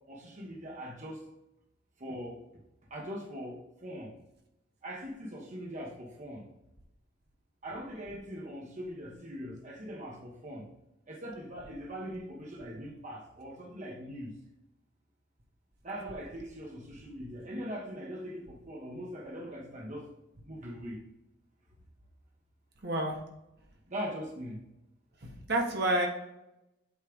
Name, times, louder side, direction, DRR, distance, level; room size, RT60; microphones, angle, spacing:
voice 1, 0.1-1.2 2.0-2.5 2.9-4.1 4.8-6.4 7.6-10.7 11.1-14.3 15.8-20.1 20.4-21.0 23.9-24.6, equal, 40° right, -1 dB, 1.2 m, -41 dB
voice 2, 22.8-23.2 25.2-26.1, right 1 dB, 60° right, 1 dB, 1.3 m, -29 dB
8.2 x 3.3 x 5.1 m, 0.90 s
head